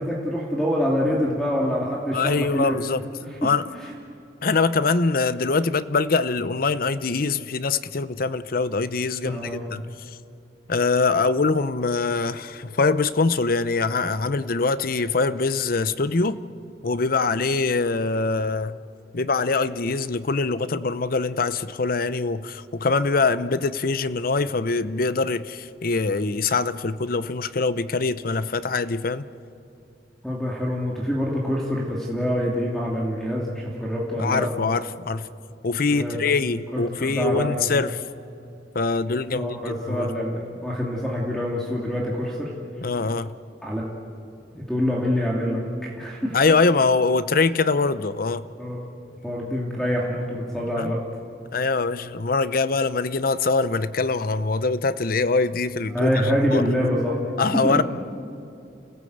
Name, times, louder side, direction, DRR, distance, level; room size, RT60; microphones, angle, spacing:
voice 1, 0.0-2.7 3.4-3.5 3.8-3.9 9.2-9.6 30.2-34.5 35.9-36.2 36.7-37.6 39.3-42.5 43.6-43.8 44.5-45.6 46.0-46.4 48.6-48.8 49.2-51.0 55.9-57.2 57.6-57.8, equal, 5° left, -3 dB, 2.5 m, -25 dB
voice 2, 2.1-3.0 3.4-3.6 4.4-9.8 10.7-16.4 16.8-18.8 19.1-29.2 34.2-35.3 35.6-38.0 38.7-40.1 42.8-43.3 46.3-48.5 50.8-50.9 51.5-56.6 57.4-57.8, left 4 dB, 55° left, 14 dB, 0.7 m, -23 dB
29.5 x 17.0 x 8.0 m, 2.7 s
head